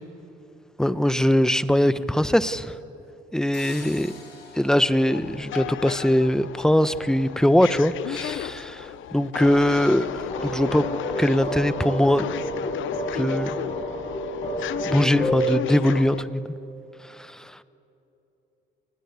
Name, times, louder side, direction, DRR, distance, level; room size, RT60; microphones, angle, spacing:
voice 1, 0.8-2.8 3.3-4.1 4.5-10.9 11.2-12.4 13.1-13.6 14.9-16.4 17.1-17.6, left 1 dB, 5° left, 14 dB, 0.9 m, -22 dB
sound 1, 3.5-6.4, left 5 dB, 60° left, 5.9 m, -46 dB
sound 2, 5.1-16.2, left 12 dB, 75° left, 0.7 m, -34 dB
sound 3, 10.3-15.4, equal, 30° left, 5.8 m, -30 dB
29.0 x 20.0 x 8.3 m, 2.9 s
cardioid pair, 90°, 20 cm